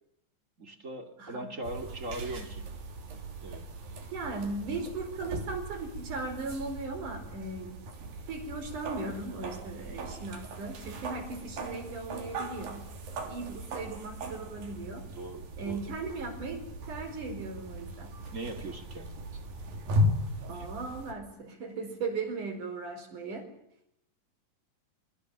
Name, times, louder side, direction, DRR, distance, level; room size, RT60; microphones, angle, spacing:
voice 1, 0.6-2.6 3.4-3.7 15.1-15.9 18.3-19.3 20.5-20.7, right 2 dB, 25° right, 6 dB, 2.3 m, -40 dB
sound 1, 1.6-21.1, equal, 85° right, 5.1 m, -37 dB
voice 2, 4.1-7.8 8.3-12.8 13.3-15.0 15.6-16.6 16.9-18.1 20.5-23.4, right 3 dB, 65° right, 6 dB, 6.2 m, -37 dB
25.0 x 25.0 x 7.3 m, 0.77 s
omnidirectional pair, 3.9 m